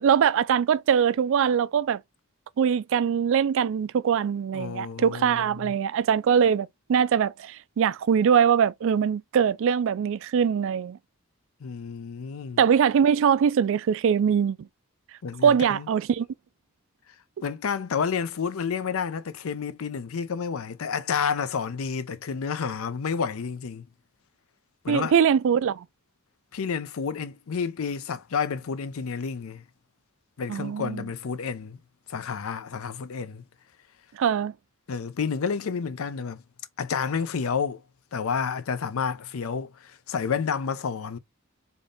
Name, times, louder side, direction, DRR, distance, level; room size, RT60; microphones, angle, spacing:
voice 1, 0.0-2.0 2.6-11.0 12.6-14.7 15.4-16.3 24.9-25.9 30.5-31.0 34.1-34.5, right 7 dB, 65° right, 0.3 m, -22 dB
voice 2, 4.5-5.7 11.6-12.6 15.2-15.9 17.4-23.8 24.8-25.1 26.5-29.6 30.4-31.8 32.1-33.4 34.9-36.4 36.8-37.8 38.1-41.2, left 6 dB, 75° left, 0.5 m, -30 dB
3.5 x 2.7 x 3.7 m
head